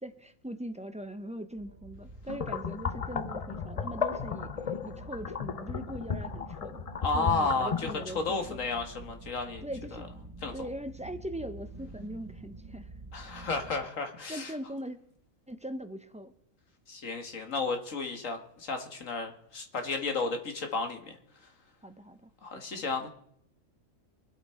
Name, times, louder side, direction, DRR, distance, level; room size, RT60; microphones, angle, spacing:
voice 1, 0.0-6.8 7.1-8.7 9.6-10.1 10.5-12.9 14.3-15.0 15.5-16.3 21.8-22.8, equal, 10° right, 9 dB, 0.4 m, -41 dB
sound 1, 1.6-13.9, right 2 dB, 85° right, 2.0 m, -47 dB
sound 2, 2.3-8.1, left 6 dB, 45° left, 0.4 m, -35 dB
voice 2, 7.0-7.9 8.2-9.6 10.4-10.5 13.1-14.5 16.9-21.2 22.4-23.1, left 4 dB, 70° left, 5 dB, 2.0 m, -32 dB
23.5 x 8.2 x 4.4 m, 0.69 s
omnidirectional pair, 1.4 m